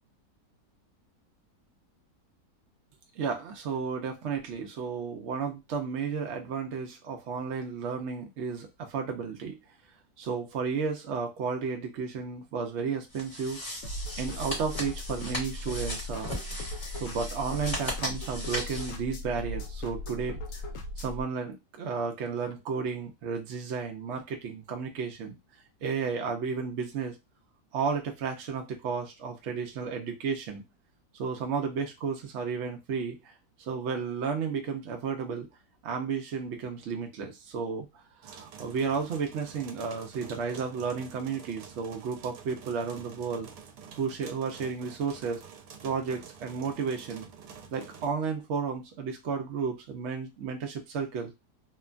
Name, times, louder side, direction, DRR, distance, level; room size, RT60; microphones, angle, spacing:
voice 1, 3.1-9.6 10.2-13.6 14.2-16.3 16.9-20.6 21.0-25.4 25.8-27.2 27.7-30.6 31.1-33.3 33.6-35.5 35.8-37.9 38.2-43.5 44.0-45.4 45.8-47.3 47.7-51.3, right 5 dB, 70° right, 3 dB, 0.6 m, -33 dB
sound 1, 13.1-19.0, left 1 dB, 20° left, 1.0 m, -37 dB
sound 2, 13.8-21.2, left 1 dB, 65° left, 0.8 m, -38 dB
sound 3, 38.2-48.1, right 6 dB, 85° right, 1.2 m, -48 dB
2.9 x 2.2 x 2.4 m, 0.22 s
omnidirectional pair, 1.7 m